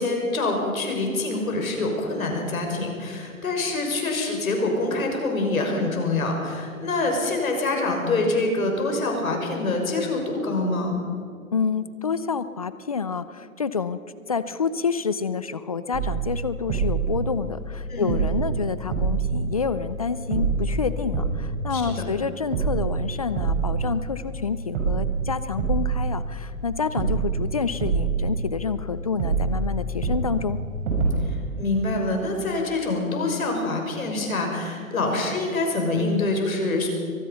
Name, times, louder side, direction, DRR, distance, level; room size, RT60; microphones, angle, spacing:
voice 1, 0.0-11.0 17.9-18.1 21.7-22.0 31.2-36.9, left 2 dB, 75° left, 2 dB, 6.3 m, -25 dB
voice 2, 11.5-14.0 14.3-30.6, left 5 dB, 25° left, 14 dB, 0.5 m, -28 dB
sound 1, 15.9-17.8 18.1-20.0 20.3-22.2 22.5-24.4 24.7-26.6 27.0-28.9 29.2-31.2, right 4 dB, 35° right, 5.4 m, -26 dB
23.5 x 19.5 x 5.7 m, 2.3 s
hypercardioid pair, 150°, 42 cm